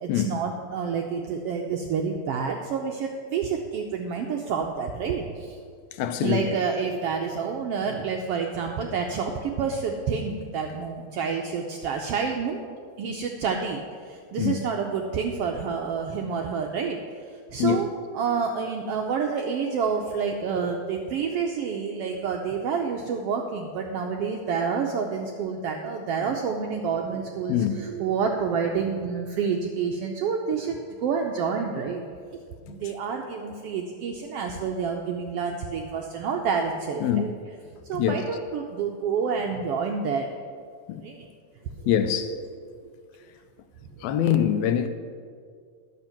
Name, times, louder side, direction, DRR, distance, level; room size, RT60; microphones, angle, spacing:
voice 1, 0.0-5.6 6.2-12.6 13.0-17.0 17.5-17.9 18.1-32.0 32.7-37.3 37.9-40.3 41.0-41.3 41.8-41.9 42.3-42.4 42.8-42.9, right 6 dB, 80° right, 1.3 m, -28 dB
voice 2, 6.0-6.5 14.4-14.6 17.6-17.8 27.5-27.8 37.0-37.3 37.9-38.2 40.9-41.0 41.9-42.3 44.0-44.9, left 9 dB, 80° left, 1.8 m, -24 dB
11.0 x 7.6 x 5.8 m
omnidirectional pair, 3.3 m